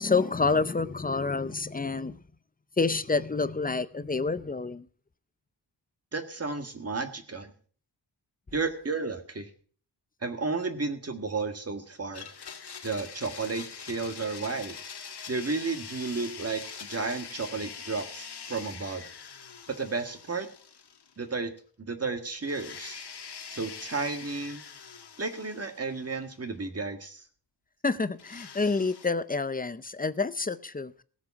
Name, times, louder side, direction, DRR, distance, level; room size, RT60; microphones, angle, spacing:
voice 1, 0.0-2.2 2.8-4.9 27.8-30.9, left 4 dB, 20° left, 0.6 m, -28 dB
voice 2, 6.1-7.5 8.5-9.5 10.2-12.3 12.8-14.8 15.3-19.0 19.8-20.5 21.2-21.5 21.9-23.0 23.5-24.6 25.2-27.2, right 4 dB, 35° right, 1.8 m, -33 dB
Domestic sounds home sounds, 12.1-21.3 21.6-21.7 22.4-26.4 28.2-29.1, left 6 dB, 65° left, 1.5 m, -44 dB
17.0 x 7.5 x 5.8 m
wide cardioid pair, 145°, 44 cm